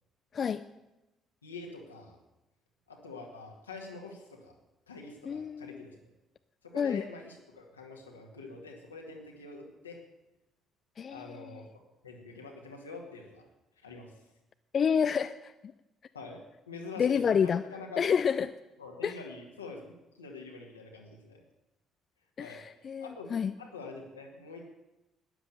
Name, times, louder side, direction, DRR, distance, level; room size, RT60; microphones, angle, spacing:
voice 1, 1.4-2.2 2.9-4.5 4.9-6.0 6.6-10.0 11.1-13.5 13.8-14.2 16.1-18.2 18.8-21.4 22.4-22.6 23.0-23.3 23.6-24.7, left 3 dB, 90° left, 0 dB, 2.0 m, -46 dB
voice 2, 5.3-5.8 6.8-7.0 11.0-11.4 14.7-15.5 17.0-17.6 18.0-18.5 19.0-19.1 22.4-23.5, left 7 dB, 45° left, 11 dB, 0.5 m, -28 dB
13.0 x 10.0 x 6.9 m, 0.98 s
figure-of-eight pair, 50°, 0 cm